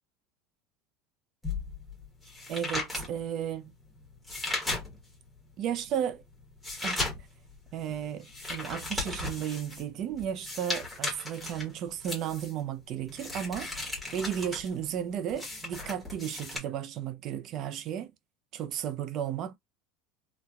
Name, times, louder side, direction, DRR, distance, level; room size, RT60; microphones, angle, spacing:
sound 1, 1.4-5.3 5.7-16.6, left 2 dB, ahead, 1.0 m, -36 dB
voice 1, 2.5-3.7 5.6-6.2 6.8-7.1 7.7-13.7 14.1-18.1 18.5-19.6, right 9 dB, 35° right, 0.4 m, -34 dB
3.9 x 2.1 x 2.3 m
cardioid pair, 170°, 0 cm